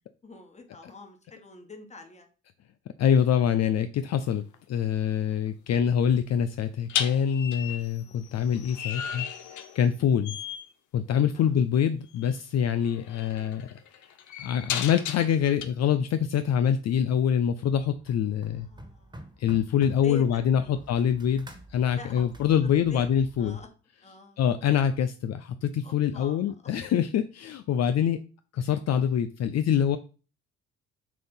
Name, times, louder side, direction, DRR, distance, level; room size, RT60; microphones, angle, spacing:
voice 1, 0.2-2.3 5.5-5.7 8.0-8.4 11.3-11.5 13.1-13.3 18.5-19.5 19.8-20.8 21.9-23.1 23.4-23.7 24.0-24.6 25.8-26.7, left 4 dB, 20° left, 4 dB, 1.5 m, -46 dB
voice 2, 3.0-4.4 4.7-10.4 10.9-13.7 14.4-18.7 19.4-23.6 24.4-28.2 28.5-30.0, left 8 dB, 60° left, 10 dB, 0.5 m, -25 dB
sound 1, 4.3-4.5 6.9-10.0 10.2-10.7 12.2-12.3 12.8-15.6, left 8 dB, 75° left, 0.9 m, -35 dB
sound 2, 17.7-23.7, right 1 dB, 15° right, 1.5 m, -49 dB
7.5 x 2.7 x 5.5 m, 0.36 s
cardioid pair, 90°, 30 cm